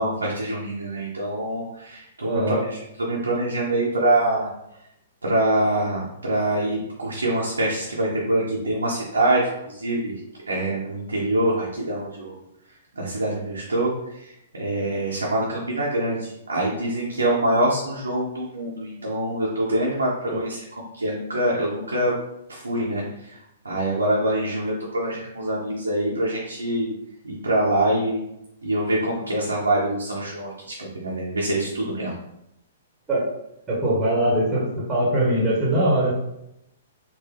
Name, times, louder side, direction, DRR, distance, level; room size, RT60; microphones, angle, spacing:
voice 1, 0.0-4.5 5.2-10.1 10.5-12.3 12.9-20.6 21.0-22.1 22.5-23.0 23.6-26.9 27.2-28.2 28.6-32.2, right 1 dB, 75° right, -5 dB, 0.8 m, -25 dB
voice 2, 2.3-2.6 20.3-20.4 33.1-33.2 33.7-36.1, right 1 dB, 10° right, -7 dB, 1.3 m, -21 dB
4.5 x 2.2 x 3.4 m, 0.83 s
figure-of-eight pair, 115°, 0 cm